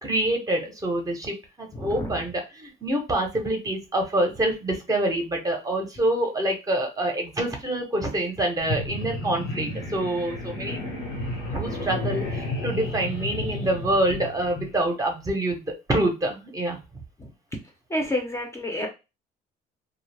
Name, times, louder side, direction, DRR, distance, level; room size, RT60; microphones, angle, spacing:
voice 1, 0.0-10.8 11.5-16.8, right 1 dB, 20° right, 2 dB, 0.8 m, -26 dB
voice 2, 1.7-2.2 13.3-13.7 17.2-17.3 17.9-18.9, left 1 dB, 15° left, 2 dB, 0.7 m, -30 dB
sound 1, 8.6-14.8, left 1 dB, 80° left, 1.1 m, -32 dB
2.3 x 2.0 x 3.3 m, 0.26 s
cardioid pair, 110°, 17 cm